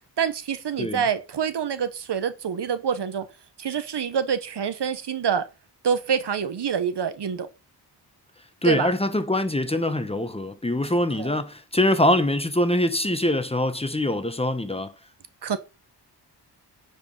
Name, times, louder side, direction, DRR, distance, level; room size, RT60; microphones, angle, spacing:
voice 1, 0.2-3.2 3.6-5.5 5.8-7.5 8.6-8.9 11.2-11.3 15.4-15.6, right 7 dB, 70° right, 1.3 m, -26 dB
voice 2, 8.6-14.9, left 1 dB, 15° left, 1.0 m, -23 dB
9.9 x 5.2 x 5.4 m
wide cardioid pair, 95°, 43 cm